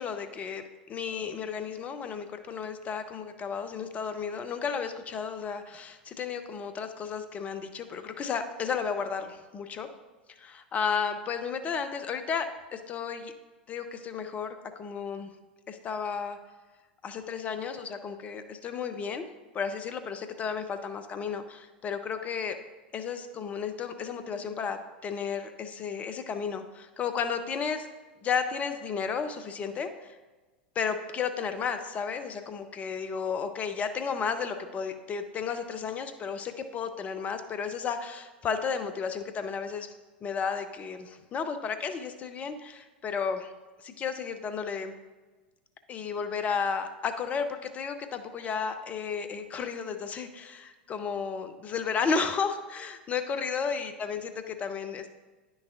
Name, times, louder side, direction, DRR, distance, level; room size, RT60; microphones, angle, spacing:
voice 1, 0.0-9.9 10.3-13.3 13.7-15.3 15.7-16.4 17.0-19.3 19.5-22.6 22.9-27.9 28.2-30.2 30.8-39.9 40.2-43.5 43.8-44.9 45.9-55.1, left 6 dB, 25° left, 9 dB, 0.6 m, -33 dB
9.6 x 6.1 x 2.5 m, 1.3 s
figure-of-eight pair, 85°, 5 cm